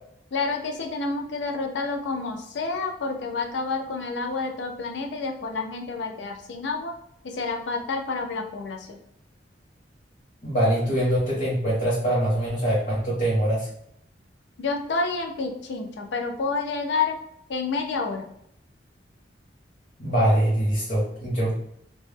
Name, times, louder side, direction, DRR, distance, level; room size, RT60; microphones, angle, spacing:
voice 1, 0.3-6.9 7.2-9.0 14.6-17.2 17.5-18.3, left 4 dB, 70° left, 3 dB, 0.4 m, -29 dB
voice 2, 10.4-13.7 20.0-21.5, right 1 dB, 45° left, -9 dB, 0.8 m, -23 dB
2.2 x 2.0 x 3.2 m, 0.72 s
head